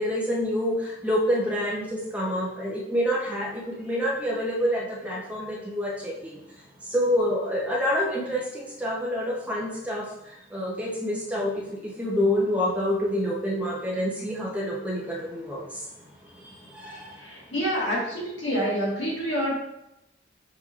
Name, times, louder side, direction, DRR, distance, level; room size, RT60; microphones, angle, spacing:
voice 1, 0.0-6.4 6.9-10.1 10.5-15.6 16.7-17.1, equal, 10° right, -4 dB, 0.6 m, -27 dB
voice 2, 17.2-19.5, equal, 85° left, -4 dB, 1.5 m, -27 dB
5.5 x 3.1 x 2.4 m, 0.85 s
head